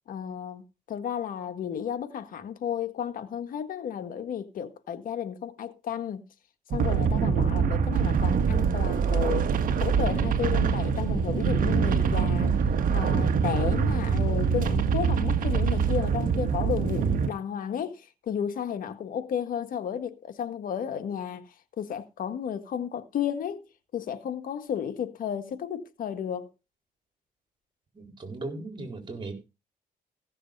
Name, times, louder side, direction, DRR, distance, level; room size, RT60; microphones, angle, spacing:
voice 1, 0.1-6.2 6.7-9.5 9.8-12.5 12.9-21.5 21.8-23.6 23.9-26.5, left 8 dB, 65° left, 1.6 m, -33 dB
sound 1, 6.7-17.3, right 6 dB, 65° right, 1.5 m, -24 dB
voice 2, 27.9-29.3, right 2 dB, 30° right, 4.6 m, -37 dB
15.5 x 6.7 x 5.4 m
cardioid pair, 95°, 15 cm